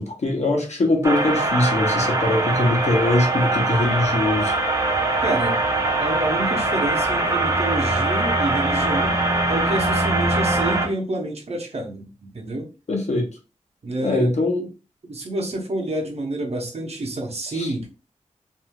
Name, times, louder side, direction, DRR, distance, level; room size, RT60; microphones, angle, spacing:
voice 1, 0.0-4.5 12.9-13.3 14.0-14.6 17.5-17.7, left 2 dB, 65° left, 1 dB, 0.9 m, -22 dB
sound 1, 1.0-10.9, right 2 dB, 25° right, 0.6 m, -22 dB
voice 2, 5.2-5.6 6.0-9.1 9.5-12.7 13.8-14.3 15.0-17.9, right 1 dB, 55° right, 1 dB, 0.9 m, -28 dB
2.6 x 2.4 x 2.9 m, 0.32 s
wide cardioid pair, 95°, 13 cm